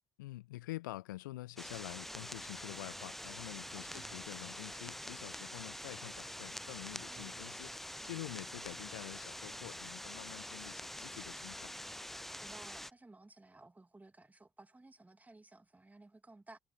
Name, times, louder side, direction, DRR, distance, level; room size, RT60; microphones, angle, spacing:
voice 1, 0.2-7.7 8.0-11.7, left 17 dB, 75° left, 0.8 m, -47 dB
sound 1, 1.6-12.9, left 1 dB, ahead, 0.4 m, -46 dB
sound 2, 2.2-2.6 2.9-3.9 4.2-4.6 4.9-5.3 5.5-6.6 6.9-7.2 7.5-7.9 8.2-9.2 9.5-9.9 10.2-10.5 10.8-11.9 12.1-12.5, left 14 dB, 60° left, 4.6 m, -74 dB
sound 3, 2.3-11.2, right 10 dB, 50° right, 5.4 m, -64 dB
voice 2, 3.7-4.1 12.1-16.6, right 2 dB, 15° right, 2.1 m, -57 dB
figure-of-eight pair, 50°, 10 cm